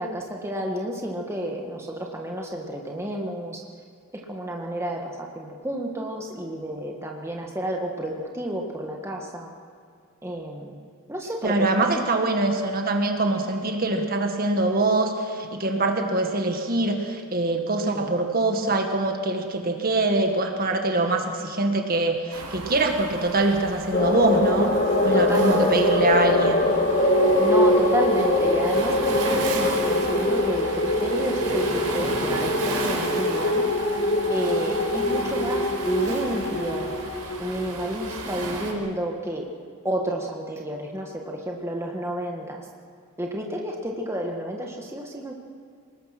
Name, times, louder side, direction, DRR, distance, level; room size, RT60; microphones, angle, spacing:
voice 1, 0.0-3.6 4.3-9.5 10.2-10.8 11.1-11.7 17.9-18.1 25.1-25.8 27.4-33.7 34.3-36.9 37.4-39.5 39.8-42.7 43.2-45.3, right 1 dB, 10° right, 0 dB, 1.7 m, -31 dB
voice 2, 11.4-24.7 25.0-26.7, right 2 dB, 40° right, 4 dB, 1.8 m, -24 dB
Waves surf, 22.3-38.7, right 2 dB, 90° right, 4.3 m, -34 dB
sound 1, 23.9-38.5, left 1 dB, 40° left, 2.1 m, -23 dB
25.0 x 20.0 x 6.0 m, 2.2 s
head